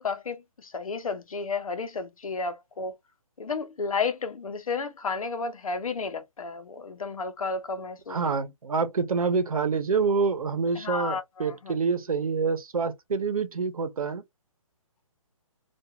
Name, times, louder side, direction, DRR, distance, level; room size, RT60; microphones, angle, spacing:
voice 1, 0.0-3.0 3.4-8.2 10.7-11.7, left 4 dB, 80° left, 0.8 m, -32 dB
voice 2, 8.1-14.2, right 5 dB, 85° right, 0.8 m, -27 dB
2.4 x 2.3 x 2.8 m
hypercardioid pair, 180°, 18 cm